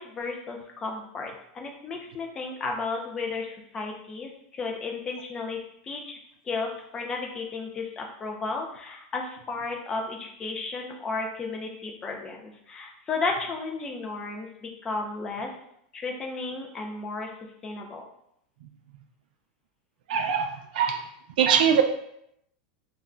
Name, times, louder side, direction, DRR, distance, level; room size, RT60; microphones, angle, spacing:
voice 1, 0.0-5.6 5.8-6.2 6.4-15.5 15.9-17.3 17.6-18.0, left 3 dB, 15° left, 1 dB, 0.3 m, -33 dB
voice 2, 20.1-21.0 21.4-21.8, right 8 dB, 70° right, 6 dB, 0.4 m, -22 dB
2.3 x 2.1 x 3.6 m, 0.75 s
supercardioid pair, 175°, 5 cm